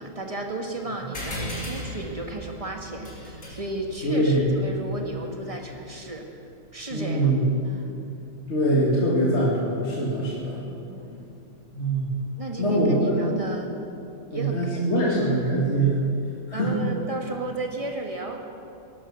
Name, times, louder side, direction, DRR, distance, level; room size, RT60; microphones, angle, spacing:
voice 1, 0.0-6.4 6.7-7.3 7.6-7.9 10.9-11.2 12.4-13.7 14.3-15.1 16.5-18.4, right 2 dB, 25° right, 2 dB, 1.5 m, -34 dB
sound 1, 1.1-6.1, equal, 85° left, 3.7 m, -38 dB
voice 2, 4.0-4.5 6.9-7.4 8.5-10.6 11.7-12.1 12.6-13.4 14.3-16.0 16.5-16.8, right 1 dB, 50° left, -5 dB, 2.5 m, -23 dB
18.0 x 12.0 x 6.2 m, 2.7 s
omnidirectional pair, 1.5 m